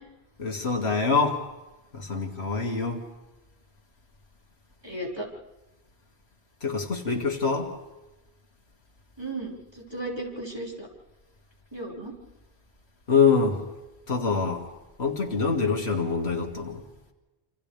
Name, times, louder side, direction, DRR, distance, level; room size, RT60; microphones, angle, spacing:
voice 1, 0.4-1.4 1.9-3.0 6.6-7.7 13.1-13.6 14.1-14.7 15.0-16.8, left 5 dB, 85° left, 2 dB, 2.6 m, -25 dB
voice 2, 4.8-5.3 9.2-10.9 11.7-12.1, right 2 dB, 25° right, -3 dB, 5.4 m, -35 dB
27.5 x 27.5 x 3.4 m, 1.1 s
omnidirectional pair, 1.1 m